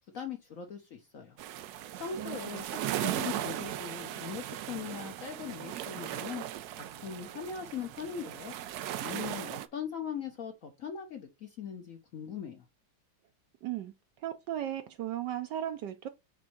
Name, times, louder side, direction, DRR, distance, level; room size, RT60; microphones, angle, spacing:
voice 1, 0.1-1.4 2.0-6.4 6.8-8.5 9.0-12.6, left 7 dB, 55° left, 1.0 m, -40 dB
sound 1, 1.4-9.7, right 12 dB, 90° right, 0.8 m, -38 dB
voice 2, 13.6-13.9 14.2-16.1, right 11 dB, 70° right, 1.1 m, -36 dB
6.2 x 3.6 x 4.3 m
omnidirectional pair, 2.2 m